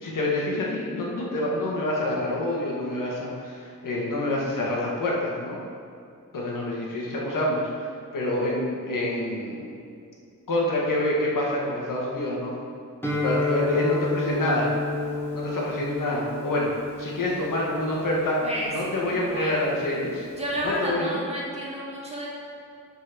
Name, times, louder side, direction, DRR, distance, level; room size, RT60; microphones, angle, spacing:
voice 1, 0.0-5.6 6.3-7.9 8.1-9.7 10.5-12.5 13.2-14.7 15.3-18.4 18.7-20.3 20.6-21.2, left 1 dB, 85° left, -3 dB, 1.7 m, -27 dB
Guitar, 13.0-20.8, left 2 dB, 5° left, 1.7 m, -31 dB
voice 2, 19.1-19.5 20.4-22.3, equal, 20° right, -5 dB, 1.9 m, -31 dB
7.8 x 4.5 x 6.1 m, 2.4 s
wide cardioid pair, 135°, 31 cm